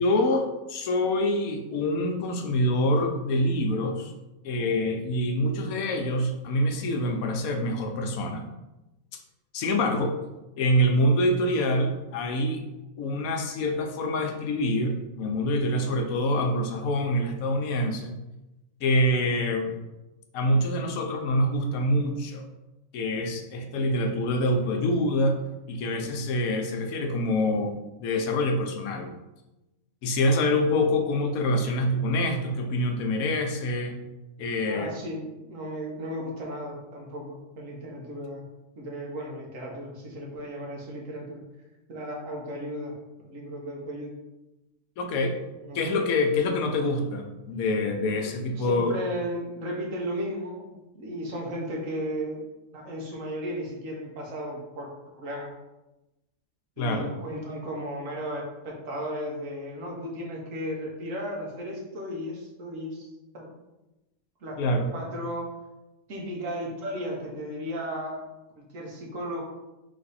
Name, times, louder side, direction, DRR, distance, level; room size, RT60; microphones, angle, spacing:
voice 1, 0.0-4.1 4.4-8.5 9.5-10.2 10.6-12.6 13.0-18.2 18.8-19.7 20.3-22.4 22.9-25.4 25.7-29.1 30.0-34.0 34.4-34.9 45.0-45.4 45.7-48.9 56.8-57.1 64.6-64.9, left 1 dB, 80° left, 4 dB, 1.1 m, -26 dB
voice 2, 34.7-38.4 38.8-41.4 41.9-42.9 43.2-44.1 45.5-45.9 48.2-52.4 52.7-55.5 56.8-63.1 63.3-63.6 64.4-64.6 64.9-65.5 66.1-68.2 68.6-69.4, equal, 65° right, -1 dB, 1.3 m, -35 dB
3.3 x 3.3 x 4.0 m, 1.0 s
omnidirectional pair, 1.5 m